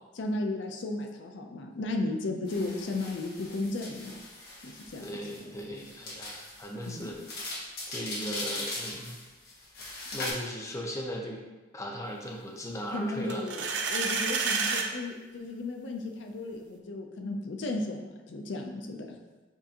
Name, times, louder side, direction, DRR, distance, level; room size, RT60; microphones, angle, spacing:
voice 1, 0.2-4.2 4.6-5.6 6.9-7.1 12.9-19.2, left 2 dB, 75° left, 3 dB, 0.5 m, -35 dB
sound 1, 2.5-10.3, left 2 dB, 60° left, 1.1 m, -40 dB
voice 2, 5.0-7.2 7.9-9.2 10.1-11.4 11.7-13.4, equal, 15° left, 0 dB, 0.5 m, -37 dB
sound 2, 13.3-14.9, right 5 dB, 70° right, 0.5 m, -29 dB
7.0 x 2.6 x 2.8 m, 1.2 s
head